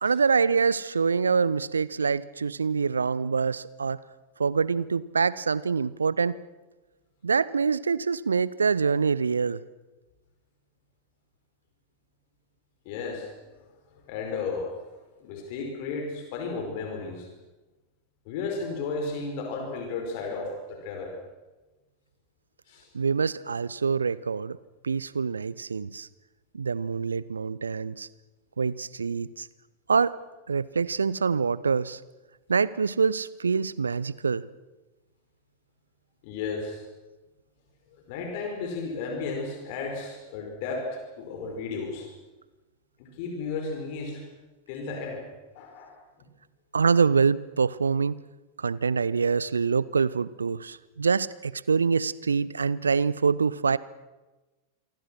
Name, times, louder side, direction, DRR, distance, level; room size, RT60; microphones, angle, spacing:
voice 1, 0.0-4.0 4.4-6.4 7.2-9.6 22.9-24.6 24.8-26.1 26.5-28.1 28.6-29.5 29.9-30.1 30.5-32.0 32.5-34.4 46.7-48.2 48.6-53.8, right 5 dB, 75° right, 20 dB, 0.8 m, -25 dB
voice 2, 12.8-13.3 13.9-14.8 15.2-17.3 18.2-21.2 22.7-22.9 36.2-36.8 37.9-42.1 43.0-44.2 44.7-45.3 45.5-46.0, left 4 dB, 45° left, 3 dB, 5.1 m, -34 dB
28.0 x 24.0 x 6.4 m, 1.1 s
figure-of-eight pair, 90°, 0 cm